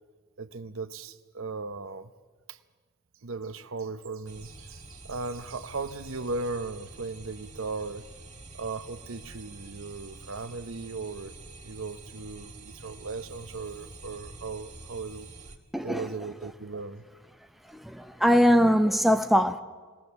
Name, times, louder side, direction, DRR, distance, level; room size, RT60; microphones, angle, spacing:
voice 1, 0.4-2.1 2.5-2.6 3.2-8.0 8.5-11.3 11.6-15.3 15.8-17.0, right 3 dB, 70° right, 0.8 m, -37 dB
sound 1, 4.3-15.6, right 2 dB, 35° right, 1.7 m, -47 dB
voice 2, 15.7-16.1 17.7-19.6, equal, ahead, 0.6 m, -22 dB
22.0 x 18.0 x 6.9 m
head